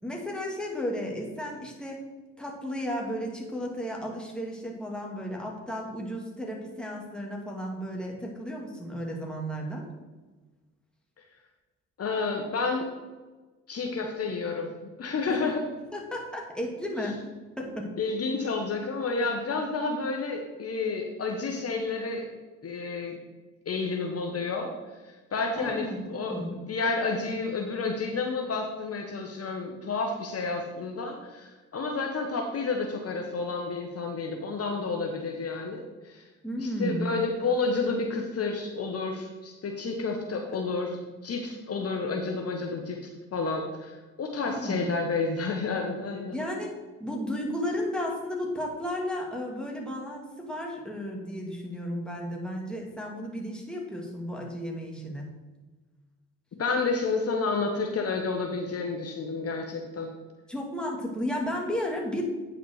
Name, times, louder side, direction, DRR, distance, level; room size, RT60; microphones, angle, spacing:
voice 1, 0.0-2.0 2.4-9.8 15.3-15.5 15.9-17.2 17.6-17.9 25.6-26.5 36.4-37.0 44.4-44.8 46.3-46.7 47.0-55.3 60.5-62.2, equal, 5° left, -2 dB, 2.8 m, -33 dB
voice 2, 12.0-12.9 13.7-14.7 15.0-15.7 18.0-22.3 22.6-23.2 23.6-24.7 25.0-36.2 36.6-41.0 41.2-43.0 43.3-46.4 56.6-60.1, left 4 dB, 45° left, 3 dB, 1.3 m, -30 dB
9.3 x 5.7 x 4.9 m, 1.2 s
supercardioid pair, 65°, 33 cm